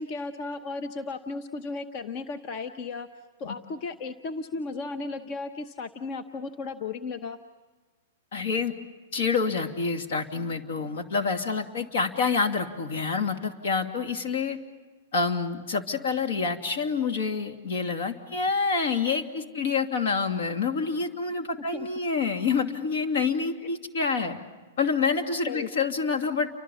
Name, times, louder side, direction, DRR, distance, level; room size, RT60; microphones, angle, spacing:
voice 1, 0.0-3.1 3.4-7.4 21.6-21.9 25.5-25.7, left 3 dB, 40° left, 9 dB, 0.9 m, -35 dB
voice 2, 8.3-8.7 9.1-14.6 15.1-24.4 24.8-26.5, left 5 dB, 65° left, 5 dB, 2.6 m, -27 dB
30.0 x 24.5 x 7.1 m, 1.3 s
hypercardioid pair, 145°, 0 cm